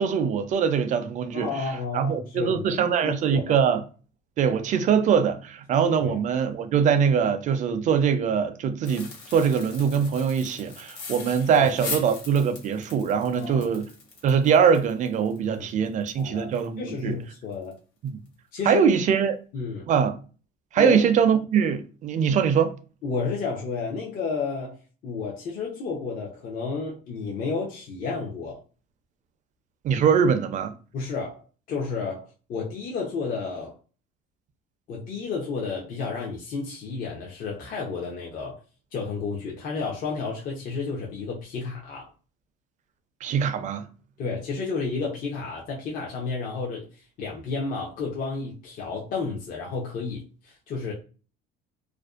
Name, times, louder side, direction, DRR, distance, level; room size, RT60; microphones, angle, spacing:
voice 1, 0.0-1.5 1.9-3.8 4.4-13.9 14.2-17.2 18.0-18.2 18.7-19.3 19.9-20.1 20.7-22.7 29.8-30.7 43.2-43.8, right 7 dB, 40° right, 0.4 m, -22 dB
voice 2, 1.3-3.6 6.0-6.2 11.5-11.7 13.3-13.7 15.5-17.8 18.5-18.8 19.5-19.9 20.8-21.0 23.0-28.6 30.9-33.8 34.9-38.6 38.9-42.1 44.2-50.9, left 4 dB, 50° left, 0.6 m, -32 dB
sound 1, 8.8-16.7 17.0-17.1 17.5-17.7 18.1-18.3, left 4 dB, 70° left, 1.0 m, -40 dB
2.5 x 2.1 x 2.4 m
supercardioid pair, 105°, 18 cm